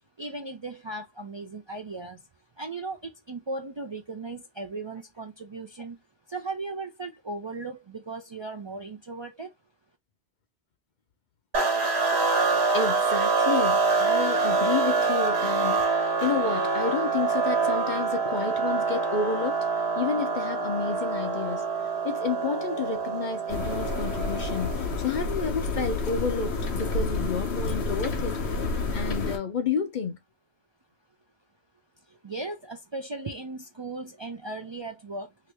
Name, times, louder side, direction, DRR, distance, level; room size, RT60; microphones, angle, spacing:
voice 1, 0.2-2.2 2.6-6.0 6.3-9.5 32.1-35.5, right 3 dB, 40° right, 0.4 m, -37 dB
sound 1, 11.5-24.9, right 4 dB, 90° right, 1.3 m, -26 dB
voice 2, 12.7-19.7 20.0-30.2, left 6 dB, 55° left, 0.7 m, -31 dB
sound 2, 23.5-29.4, left 3 dB, 90° left, 1.1 m, -29 dB
2.9 x 2.6 x 3.3 m
omnidirectional pair, 1.1 m